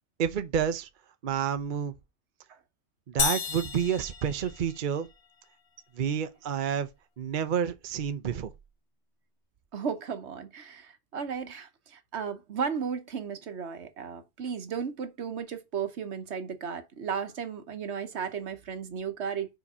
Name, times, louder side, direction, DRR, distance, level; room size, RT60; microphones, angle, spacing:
voice 1, 0.2-0.9 1.2-1.9 3.1-5.1 5.9-6.9 7.2-8.5, right 8 dB, 50° right, 0.7 m, -29 dB
sound 1, 3.2-5.1, left 6 dB, 55° left, 1.0 m, -32 dB
voice 2, 9.7-19.6, right 6 dB, 70° right, 1.3 m, -35 dB
5.1 x 5.0 x 5.4 m
omnidirectional pair, 1.2 m